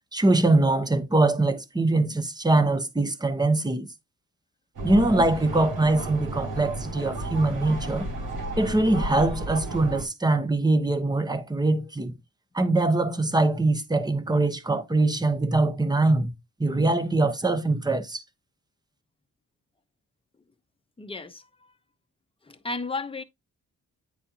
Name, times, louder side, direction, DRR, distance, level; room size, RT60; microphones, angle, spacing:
voice 1, 0.1-3.9 4.8-8.1 8.6-12.1 12.5-16.3 16.6-18.2, right 2 dB, 10° right, 1.0 m, -23 dB
sound 1, 4.7-10.0, right 2 dB, 75° right, 4.1 m, -33 dB
voice 2, 21.0-21.5 22.5-23.2, left 3 dB, 15° left, 0.9 m, -33 dB
9.9 x 4.3 x 2.8 m
cardioid pair, 120°, 33 cm